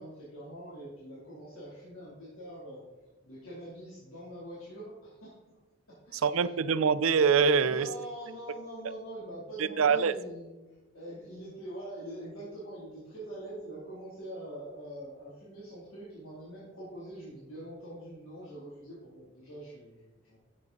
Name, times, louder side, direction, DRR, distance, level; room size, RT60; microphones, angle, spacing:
voice 1, 0.0-2.8 3.2-5.6 5.9-6.5 7.6-20.4, right 1 dB, 85° left, -7 dB, 3.0 m, -44 dB
voice 2, 6.1-7.9 9.6-10.1, right 6 dB, 90° right, 15 dB, 0.5 m, -24 dB
11.0 x 7.5 x 3.9 m, 1.1 s
head